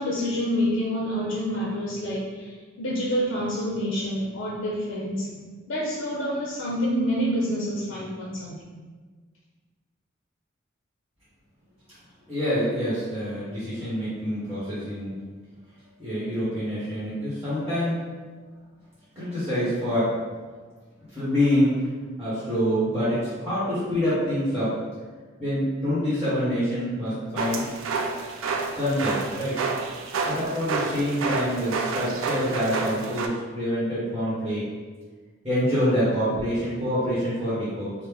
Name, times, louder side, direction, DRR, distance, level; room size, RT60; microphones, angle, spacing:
voice 1, 0.0-5.3 5.7-8.6, equal, 80° left, -4 dB, 0.6 m, -27 dB
voice 2, 12.3-15.2 16.0-18.0 19.1-20.2 21.1-21.9 22.2-24.8 25.4-27.7 28.7-29.6 30.3-34.7 35.4-37.9, equal, 10° right, -12 dB, 1.1 m, -26 dB
sound 1, 27.4-33.3, right 4 dB, 80° right, 0.3 m, -29 dB
3.2 x 2.0 x 3.4 m, 1.4 s
head